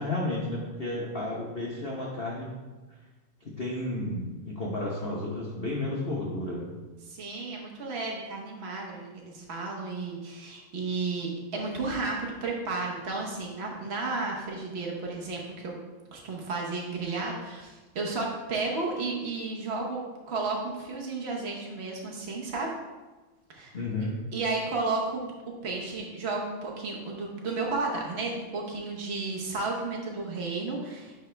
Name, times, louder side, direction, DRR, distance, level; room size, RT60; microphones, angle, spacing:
voice 1, 0.0-2.5 3.4-6.7 23.7-24.1, left 2 dB, 80° left, -4 dB, 0.5 m, -32 dB
voice 2, 7.1-15.8 16.1-22.7 23.5-23.8 24.3-25.2 25.6-31.1, right 3 dB, 75° right, -1 dB, 0.6 m, -33 dB
9.9 x 3.4 x 3.3 m, 1.2 s
omnidirectional pair, 2.4 m